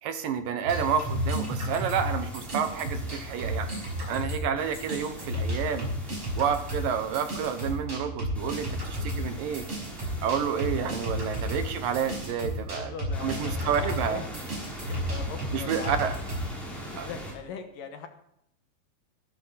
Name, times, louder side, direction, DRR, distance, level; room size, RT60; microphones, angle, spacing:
voice 1, 0.0-3.7 4.1-5.9 6.4-9.7 10.2-12.9 13.2-14.2 15.5-16.2 17.0-17.1, right 7 dB, 70° right, 8 dB, 2.4 m, -29 dB
sound 1, 0.7-4.2 4.6-7.7 8.3-12.3 13.1-17.3, right 1 dB, ahead, 6.5 m, -42 dB
sound 2, 0.7-4.5 4.7-16.5, equal, 35° right, 6.1 m, -32 dB
voice 2, 12.7-14.4 14.9-16.3 16.5-18.1, left 7 dB, 65° left, 6 dB, 2.5 m, -41 dB
15.0 x 13.0 x 4.1 m, 0.76 s
omnidirectional pair, 4.5 m